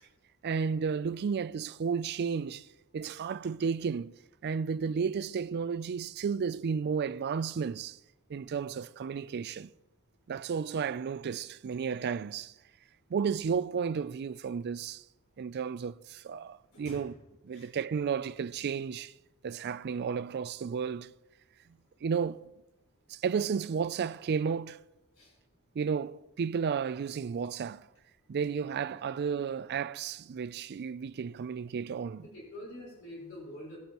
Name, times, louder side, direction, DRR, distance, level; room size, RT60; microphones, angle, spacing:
voice 1, 0.4-2.7 2.9-4.1 4.4-8.0 8.3-9.7 10.3-12.5 13.1-15.0 15.4-17.1 17.4-19.1 19.4-21.1 22.0-22.5 23.1-24.8 25.8-27.9 28.3-32.3, right 6 dB, 50° right, 0.3 m, -33 dB
voice 2, 16.7-17.0 17.5-17.7 25.2-25.3 29.0-29.4 32.2-33.8, left 1 dB, 65° left, 4.5 m, -46 dB
19.0 x 8.1 x 3.0 m
head